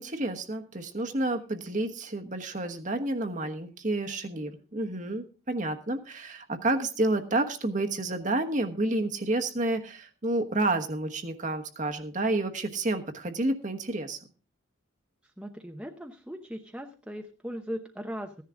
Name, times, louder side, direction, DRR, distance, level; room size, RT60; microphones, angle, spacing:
voice 1, 0.0-14.2, right 2 dB, 35° right, 5 dB, 1.2 m, -30 dB
voice 2, 15.4-18.4, equal, 5° right, 3 dB, 0.8 m, -38 dB
15.5 x 10.5 x 3.7 m, 0.35 s
head